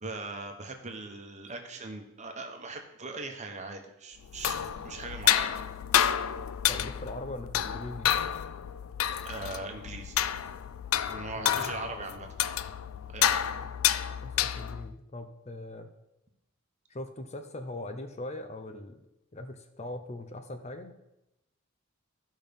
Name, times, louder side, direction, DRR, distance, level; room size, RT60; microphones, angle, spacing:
voice 1, 0.0-5.7 9.2-10.2 11.1-12.3 13.1-13.5, right 3 dB, 35° right, 4 dB, 1.1 m, -40 dB
sound 1, 4.2-14.9, left 10 dB, 75° left, 0.4 m, -30 dB
voice 2, 6.7-8.1 11.4-11.6 13.6-13.7 14.2-15.9 16.9-19.0 19.3-20.9, left 1 dB, 30° left, 7 dB, 0.7 m, -40 dB
13.0 x 5.5 x 5.3 m, 0.88 s
head